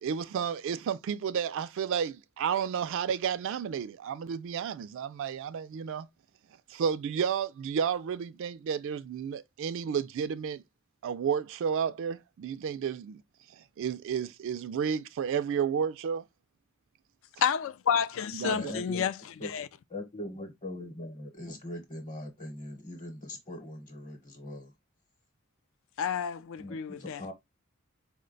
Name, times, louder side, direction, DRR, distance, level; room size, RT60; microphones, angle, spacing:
voice 1, 0.0-6.1 6.7-10.6 11.0-13.2 13.6-16.2 18.3-18.7, right 7 dB, 65° right, 0.3 m, -32 dB
voice 2, 17.4-19.1 19.4-19.7 26.0-27.2, left 7 dB, 65° left, 0.4 m, -30 dB
voice 3, 18.4-19.0 19.4-19.5 19.9-24.7 26.6-27.3, left 1 dB, 30° left, 1.0 m, -41 dB
4.6 x 2.2 x 3.7 m
head